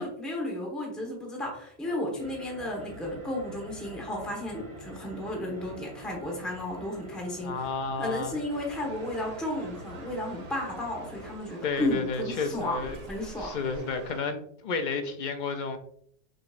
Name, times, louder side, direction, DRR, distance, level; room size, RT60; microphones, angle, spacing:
voice 1, 0.0-7.7 8.0-13.6, left 1 dB, ahead, 1.1 m, -33 dB
sound 1, 2.2-11.4, right 1 dB, 60° right, 1.8 m, -47 dB
voice 2, 7.4-8.4 11.6-13.0 13.4-15.8, left 4 dB, 55° left, 0.6 m, -31 dB
sound 2, 8.5-14.2, right 2 dB, 40° right, 0.7 m, -47 dB
6.2 x 3.0 x 2.5 m
omnidirectional pair, 1.2 m